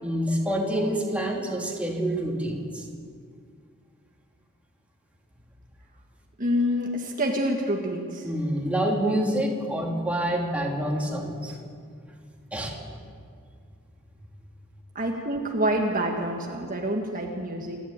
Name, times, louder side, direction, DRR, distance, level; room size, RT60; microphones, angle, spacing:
voice 1, 0.0-2.8 8.2-11.6 12.5-12.7, right 1 dB, 5° right, -1 dB, 2.9 m, -27 dB
voice 2, 6.4-8.3 15.0-17.8, equal, 40° right, 1 dB, 1.7 m, -27 dB
27.5 x 11.0 x 9.0 m, 2.2 s
head